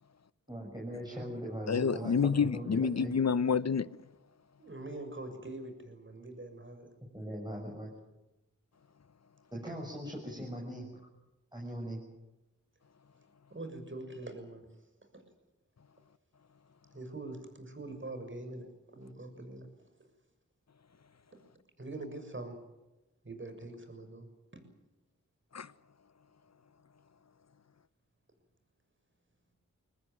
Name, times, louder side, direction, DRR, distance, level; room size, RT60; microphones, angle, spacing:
voice 1, 0.5-2.1 2.5-3.1 7.1-7.9 9.5-11.1 11.5-12.0, equal, 15° right, 7.0 m, -40 dB
voice 2, 1.7-3.9 25.5-25.7, left 6 dB, 55° left, 0.9 m, -28 dB
voice 3, 4.6-6.9 13.5-14.7 15.1-15.2 16.9-19.7 21.8-22.6 23.2-24.3 24.5-24.6, right 2 dB, 40° right, 6.7 m, -44 dB
24.0 x 19.0 x 9.1 m
cardioid pair, 55°, 32 cm